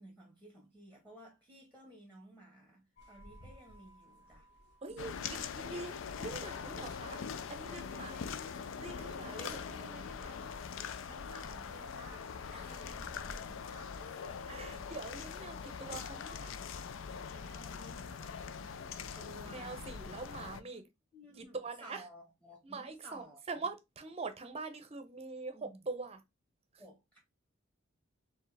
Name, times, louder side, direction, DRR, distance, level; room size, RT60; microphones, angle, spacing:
voice 1, 0.0-4.5 4.8-5.5 6.8-6.9 7.7-8.6 9.1-10.2 11.1-14.8 17.2-20.8 21.1-23.4 25.5-25.8 26.8-27.2, equal, 10° left, 1.4 m, -56 dB
sound 1, 3.0-13.5, equal, 60° left, 1.1 m, -58 dB
voice 2, 4.8-7.2 7.5-8.2 8.8-10.5 12.5-12.8 14.5-16.5 19.5-20.9 21.4-22.1 22.6-26.2, right 3 dB, 30° right, 0.7 m, -44 dB
sound 2, 5.0-20.6, left 6 dB, 80° left, 0.4 m, -43 dB
4.5 x 3.1 x 3.3 m
head